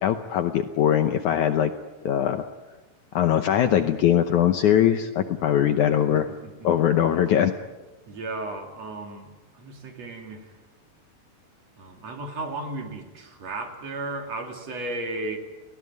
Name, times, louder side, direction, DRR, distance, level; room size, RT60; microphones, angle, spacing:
voice 1, 0.0-1.7 2.0-2.5 3.1-6.3 6.6-7.5, left 10 dB, 70° left, 8 dB, 2.0 m, -21 dB
voice 2, 6.1-6.7 8.1-10.6 11.8-15.4, right 2 dB, 45° right, 4 dB, 3.4 m, -35 dB
29.5 x 18.5 x 9.5 m, 1.2 s
omnidirectional pair, 4.3 m